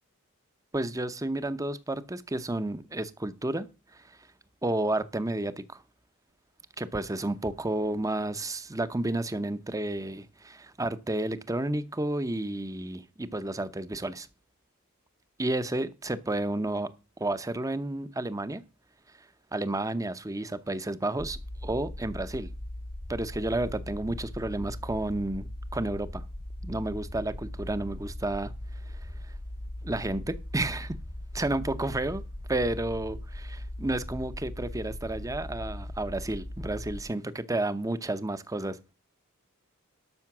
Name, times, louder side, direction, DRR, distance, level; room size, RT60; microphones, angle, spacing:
voice 1, 0.7-3.7 3.9-4.2 4.6-5.8 6.8-14.3 15.4-16.9 17.2-18.6 19.5-22.5 23.1-25.5 25.7-26.2 26.6-28.5 28.9-29.0 29.3-29.4 29.8-31.0 31.3-32.2 32.5-38.8, right 2 dB, 15° right, 0.7 m, -31 dB
sound 1, 21.2-37.0, left 1 dB, 20° left, 0.7 m, -39 dB
12.5 x 6.4 x 6.0 m
head